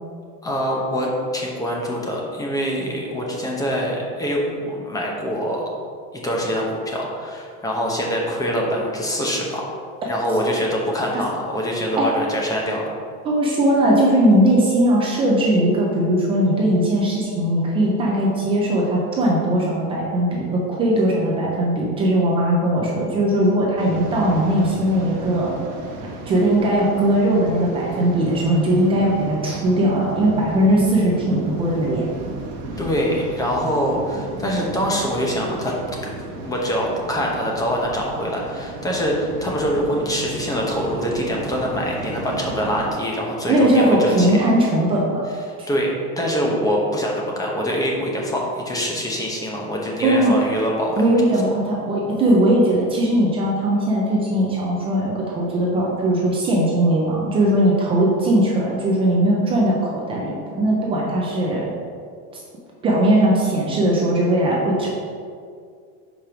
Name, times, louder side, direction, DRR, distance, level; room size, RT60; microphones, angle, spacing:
voice 1, 0.4-5.6 6.2-9.7 10.1-12.9 32.8-44.4 45.7-51.0, equal, 10° left, -2 dB, 0.7 m, -24 dB
voice 2, 13.2-25.6 26.3-32.0 43.5-45.2 45.6-45.7 50.0-50.5 51.0-61.7 62.8-64.9, right 1 dB, 15° right, -4 dB, 0.3 m, -19 dB
Waves surf, 23.8-42.9, right 2 dB, 45° right, 1.1 m, -35 dB
5.1 x 4.5 x 5.8 m, 2.2 s
supercardioid pair, 155°, 46 cm